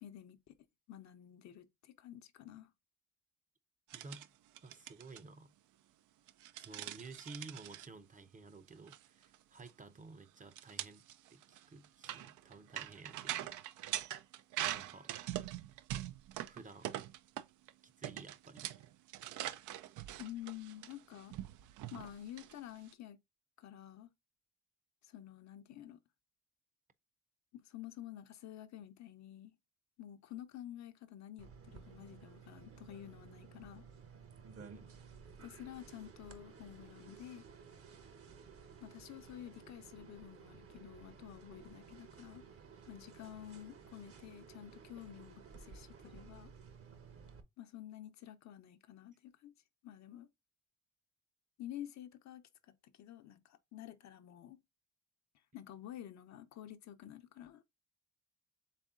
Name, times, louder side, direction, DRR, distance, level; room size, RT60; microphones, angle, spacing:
voice 1, 0.0-0.5 0.9-2.7 20.2-21.3 21.9-23.2 23.6-24.1 25.0-26.0 27.5-29.5 30.0-33.9 35.4-37.5 38.8-42.5 42.9-46.5 47.6-49.5 49.8-50.3 51.6-54.6 55.5-57.6, left 12 dB, 65° left, 0.7 m, -50 dB
voice 2, 3.9-4.3 4.6-5.5 6.6-11.0 11.3-13.5 14.7-15.1 16.4-17.0 17.8-18.7 34.6-34.9, right 3 dB, 25° right, 0.6 m, -53 dB
sound 1, 3.9-4.3 4.6-5.2 6.3-7.9 8.7-9.0 9.2-9.4 9.7-9.8 10.5-17.7 18.0-22.9, right 13 dB, 80° right, 0.5 m, -43 dB
sound 2, 31.4-47.4, right 6 dB, 50° right, 0.9 m, -55 dB
4.2 x 3.5 x 3.6 m
cardioid pair, 90°, 30 cm